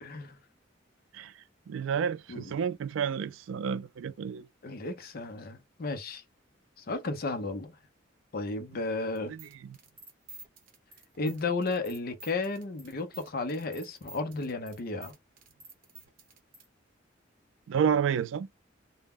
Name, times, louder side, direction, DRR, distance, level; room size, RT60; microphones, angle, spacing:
voice 1, 0.0-0.4 2.3-2.4 4.6-6.2 6.8-7.8 8.3-9.3 11.2-15.2, left 3 dB, 55° left, 0.5 m, -33 dB
voice 2, 1.7-4.5 9.3-9.8 17.7-18.5, right 7 dB, 80° right, 0.3 m, -30 dB
sound 1, 9.2-16.7, right 3 dB, 45° right, 0.8 m, -51 dB
2.1 x 2.0 x 3.5 m
head